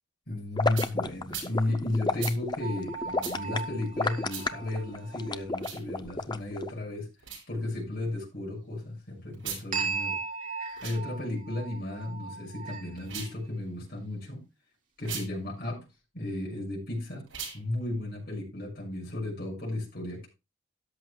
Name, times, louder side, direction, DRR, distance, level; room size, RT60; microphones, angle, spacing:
voice 1, 0.3-7.1 7.5-10.2 10.8-14.4 15.0-15.8 16.1-17.2 17.5-20.3, left 1 dB, 50° left, -2 dB, 6.4 m, -34 dB
sound 1, 0.6-6.7, left 3 dB, 20° left, 0.6 m, -31 dB
sound 2, 0.7-0.9 1.3-1.5 2.2-2.4 3.2-3.4 4.3-4.5 5.5-5.8 7.2-7.4 9.3-9.6 10.7-11.0 13.0-13.4 15.0-15.3 17.3-17.6, right 7 dB, 75° right, 7.1 m, -38 dB
sound 3, 2.6-5.5 9.7-13.3, right 5 dB, 40° right, 2.8 m, -37 dB
13.5 x 11.0 x 2.3 m, 0.26 s
head